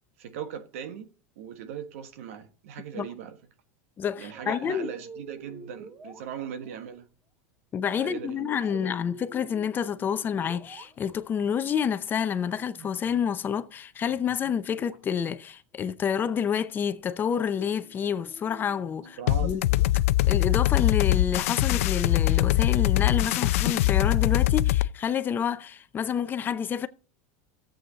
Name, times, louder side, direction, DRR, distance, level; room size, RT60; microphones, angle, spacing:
voice 1, 0.2-1.1 1.4-3.4 4.2-7.1 8.0-9.0 19.2-19.6, right 8 dB, 80° right, 1.5 m, -39 dB
voice 2, 4.0-4.9 7.7-19.6 20.3-26.9, left 8 dB, 25° left, 0.7 m, -28 dB
sound 1, 4.2-6.8 8.6-11.5 12.5-13.8 14.0-15.5 17.3-20.5 22.2-23.0, right 2 dB, 30° right, 2.6 m, -49 dB
sound 2, 19.3-24.9, left 15 dB, 80° left, 0.4 m, -23 dB
14.0 x 7.9 x 4.0 m
supercardioid pair, 130°, 7 cm